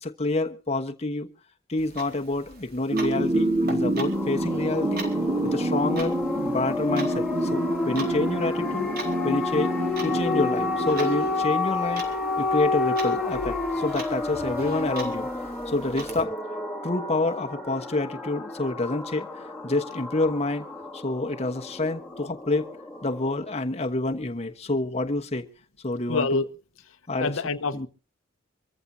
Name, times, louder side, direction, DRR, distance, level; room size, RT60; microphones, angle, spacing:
voice 1, 0.0-1.3 1.7-5.1 5.4-6.1 6.4-8.9 9.2-9.7 10.0-12.0 12.4-15.3 15.7-16.3 16.8-20.7 20.9-22.7 23.0-25.5 25.8-26.4 27.1-27.3 27.7-27.9, left 2 dB, 30° left, 1.1 m, -28 dB
Clock, 1.8-16.2, right 2 dB, 50° right, 4.0 m, -42 dB
sound 1, 2.9-11.7, right 1 dB, 30° right, 2.5 m, -27 dB
sound 2, 4.1-23.5, left 3 dB, 5° left, 1.8 m, -30 dB
voice 2, 26.1-26.4 27.2-27.9, left 3 dB, 80° left, 1.0 m, -26 dB
25.0 x 14.5 x 2.7 m
head